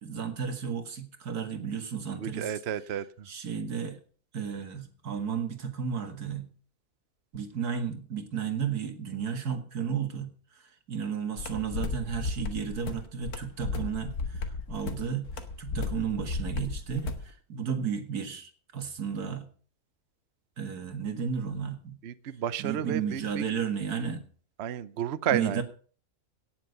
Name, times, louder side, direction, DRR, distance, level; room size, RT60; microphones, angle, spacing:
voice 1, 0.0-2.5 3.3-4.0 4.3-6.5 7.3-10.3 10.9-15.3 15.6-19.5 20.6-22.0 22.6-24.2 25.3-25.6, right 7 dB, 90° right, 2.4 m, -33 dB
voice 2, 2.2-3.3 22.0-23.4 24.6-25.6, right 9 dB, 50° right, 0.9 m, -32 dB
sound 1, 11.4-17.3, left 4 dB, 75° left, 2.1 m, -34 dB
17.5 x 7.3 x 6.8 m
omnidirectional pair, 1.6 m